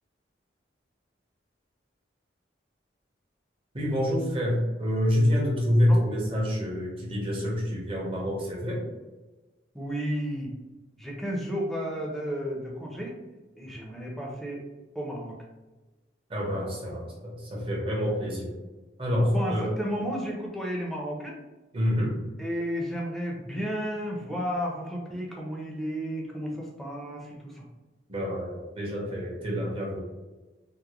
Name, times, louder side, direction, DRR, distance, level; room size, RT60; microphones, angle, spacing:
voice 1, 3.7-8.8 16.3-18.5 19.0-19.7 21.7-22.2 28.1-30.0, equal, 30° right, -3 dB, 0.9 m, -27 dB
voice 2, 9.7-10.5 11.0-13.2 13.6-14.6 14.9-15.3 19.2-21.4 22.4-27.6, equal, ahead, -2 dB, 0.6 m, -32 dB
3.6 x 2.1 x 2.9 m, 1.2 s
head